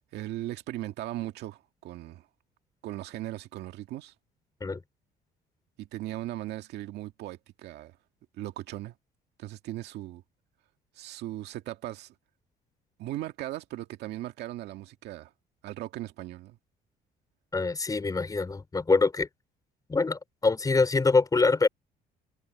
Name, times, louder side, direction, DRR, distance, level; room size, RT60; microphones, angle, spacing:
voice 1, 0.1-2.3 2.8-4.1 5.8-8.0 8.4-8.9 9.4-10.2 11.0-12.1 13.0-15.3 15.6-16.6, right 15 dB, 80° right, 2.0 m, -38 dB
voice 2, 17.5-19.3 19.9-21.7, left 3 dB, 20° left, 4.8 m, -24 dB
cardioid pair, 110°, 17 cm